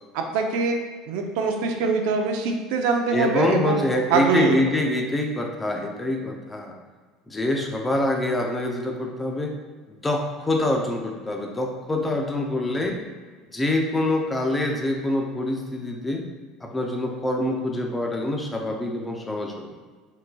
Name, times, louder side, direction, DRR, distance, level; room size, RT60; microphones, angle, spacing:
voice 1, 0.1-0.8 1.1-3.8 4.1-4.6, right 4 dB, 80° right, 3 dB, 0.6 m, -23 dB
voice 2, 3.1-6.8 7.3-9.5 9.9-13.0 13.5-16.3 16.6-19.7, left 1 dB, 15° left, 2 dB, 0.6 m, -25 dB
5.3 x 4.0 x 2.3 m, 1.5 s
supercardioid pair, 120°, 0 cm